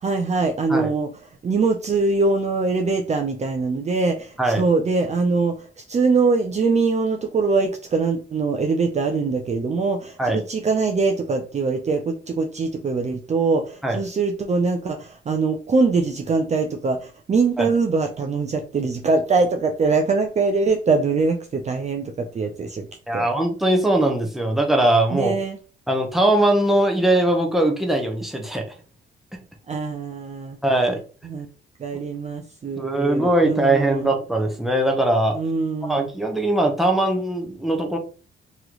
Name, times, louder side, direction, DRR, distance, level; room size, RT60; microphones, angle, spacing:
voice 1, 0.0-1.1 1.4-22.9 23.1-23.2 25.1-25.6 29.7-30.6 31.2-31.5 31.8-34.2 35.3-36.1, right 4 dB, 35° right, 3 dB, 0.6 m, -23 dB
voice 2, 23.1-25.4 25.9-28.6 30.6-31.0 32.8-35.4 35.9-38.0, right 1 dB, ahead, 2 dB, 1.0 m, -20 dB
3.1 x 2.9 x 3.8 m, 0.38 s
cardioid pair, 90°, 20 cm